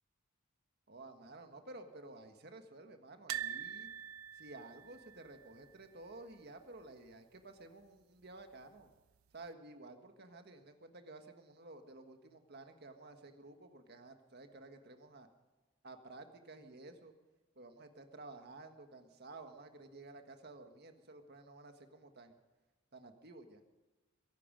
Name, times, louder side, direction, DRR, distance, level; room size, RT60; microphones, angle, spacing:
voice 1, 0.9-3.9 4.3-8.9 9.3-15.3 15.8-17.1 17.5-22.4 22.9-23.6, right 2 dB, 50° right, 6 dB, 1.6 m, -53 dB
sound 1, 3.3-6.3 6.6-6.8 7.1-7.2 8.4-8.9 9.5-9.6, right 9 dB, 85° right, 0.6 m, -44 dB
22.5 x 11.0 x 5.2 m, 1.2 s
head